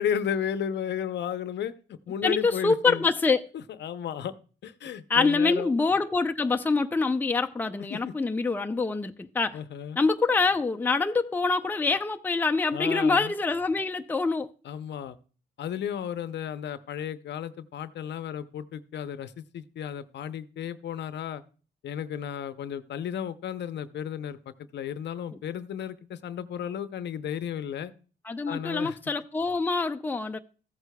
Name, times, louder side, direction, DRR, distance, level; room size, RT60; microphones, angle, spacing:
voice 1, 0.0-3.1 3.5-4.3 4.6-5.7 7.9-8.1 9.5-10.0 12.7-13.3 14.6-15.2 15.6-21.4 21.8-27.9 28.5-29.0, left 9 dB, 60° left, 0.6 m, -33 dB
voice 2, 2.2-3.5 5.1-9.6 10.0-14.5 28.2-30.4, left 4 dB, 10° left, 0.5 m, -25 dB
14.5 x 8.0 x 2.2 m
cardioid pair, 90°, 20 cm